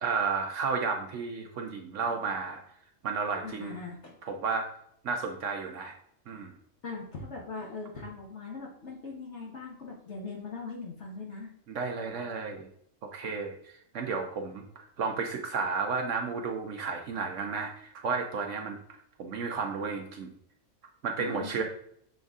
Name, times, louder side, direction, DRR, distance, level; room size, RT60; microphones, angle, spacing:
voice 1, 0.0-2.6 3.0-3.8 4.3-4.7 5.0-6.0 6.3-6.5 11.7-12.7 13.0-20.3 21.0-21.6, right 5 dB, 65° right, 3 dB, 1.0 m, -32 dB
voice 2, 3.4-4.2 6.8-11.5 21.2-21.6, left 4 dB, 55° left, -2 dB, 1.5 m, -40 dB
6.9 x 3.9 x 3.6 m, 0.67 s
omnidirectional pair, 1.4 m